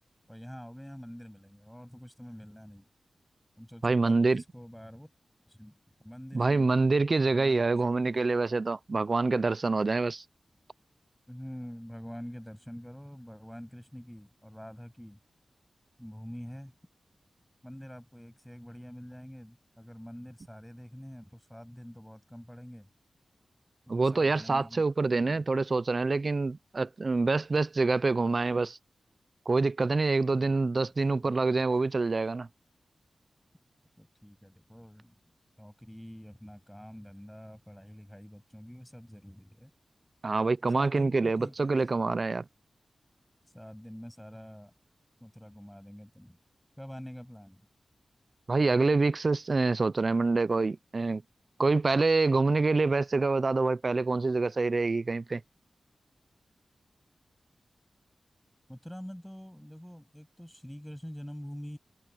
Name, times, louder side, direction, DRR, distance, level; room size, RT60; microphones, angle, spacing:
voice 1, 0.3-2.8 3.6-5.1 5.5-7.0 7.2-7.6 11.3-15.2 16.0-16.8 17.6-22.9 23.9-24.8 34.0-35.2 35.6-39.7 40.7-41.8 43.5-44.7 45.2-46.4 46.8-47.6 58.7-61.8, equal, 5° left, 7.4 m, -46 dB
voice 2, 3.8-4.4 6.3-10.2 23.9-28.8 29.5-32.5 40.2-42.4 48.5-51.2 51.6-55.4, right 3 dB, 45° right, 0.5 m, -26 dB
wide cardioid pair, 85°, 0 cm